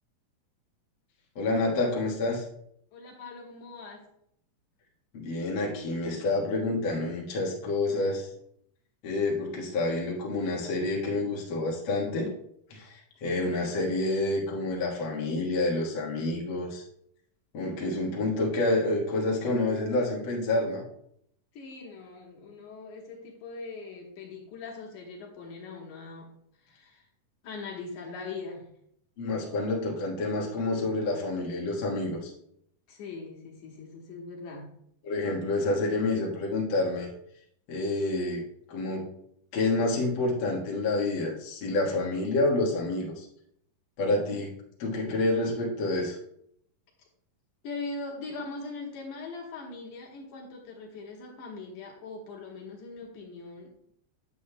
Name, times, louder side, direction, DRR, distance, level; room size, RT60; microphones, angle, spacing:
voice 1, 1.3-2.4 5.1-8.3 9.0-12.3 12.7-16.8 17.5-20.8 29.2-32.3 35.0-37.1 37.7-38.4 38.7-39.1 39.5-43.3 44.0-46.1, left 2 dB, 50° left, -3 dB, 1.6 m, -28 dB
voice 2, 2.9-4.1 13.3-13.6 21.5-27.1 27.4-28.7 32.9-34.7 47.0-47.1 47.6-53.9, left 3 dB, 70° left, -1 dB, 2.6 m, -41 dB
8.3 x 7.8 x 2.2 m, 0.71 s
omnidirectional pair, 3.9 m